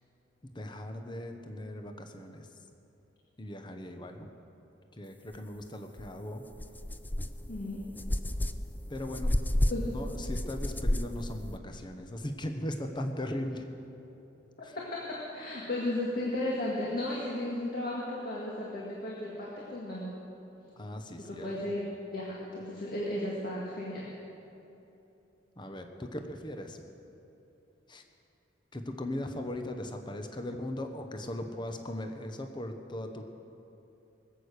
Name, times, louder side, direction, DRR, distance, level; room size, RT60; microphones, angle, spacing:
voice 1, 0.4-2.5 3.4-4.3 4.9-6.4 8.9-9.4 9.7-13.7 14.6-14.8 20.8-21.6 25.6-26.8 27.9-28.0 28.7-33.2, left 1 dB, 25° left, 6 dB, 0.9 m, -38 dB
sound 1, 6.0-6.1 6.5-11.6, left 1 dB, 10° left, 0.4 m, -32 dB
voice 2, 7.5-7.8 9.7-9.8 14.6-20.1 21.4-21.8 22.1-24.1, left 1 dB, 50° left, -4 dB, 2.0 m, -34 dB
20.5 x 8.3 x 6.6 m, 2.9 s
head